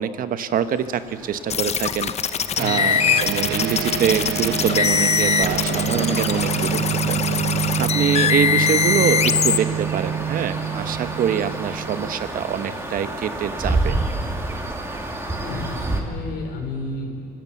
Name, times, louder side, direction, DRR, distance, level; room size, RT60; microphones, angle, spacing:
voice 1, 0.0-2.1 2.6-7.2 7.8-14.0, right 8 dB, 55° right, 11 dB, 1.1 m, -25 dB
sound 1, 0.5-16.0, right 2 dB, 15° right, 2.5 m, -31 dB
sound 2, 1.5-9.6, left 7 dB, 40° left, 0.8 m, -22 dB
voice 2, 2.6-2.9 15.4-17.2, left 2 dB, 75° left, 3 dB, 4.3 m, -31 dB
sound 3, 2.6-12.3, right 10 dB, 85° right, 0.9 m, -27 dB
25.0 x 14.0 x 8.4 m, 2.4 s
cardioid pair, 110°, 17 cm